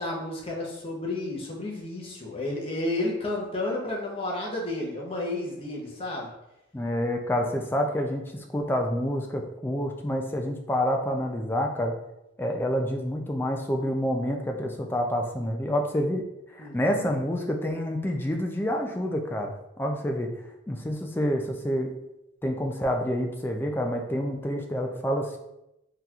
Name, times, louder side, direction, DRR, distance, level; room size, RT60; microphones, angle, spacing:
voice 1, 0.0-6.3 16.6-17.2, left 2 dB, 30° left, -2 dB, 0.7 m, -32 dB
voice 2, 6.7-11.9 12.4-16.2 16.5-20.3 20.7-21.9 22.4-25.4, equal, 10° left, 2 dB, 0.3 m, -28 dB
3.8 x 2.8 x 2.4 m, 0.88 s
head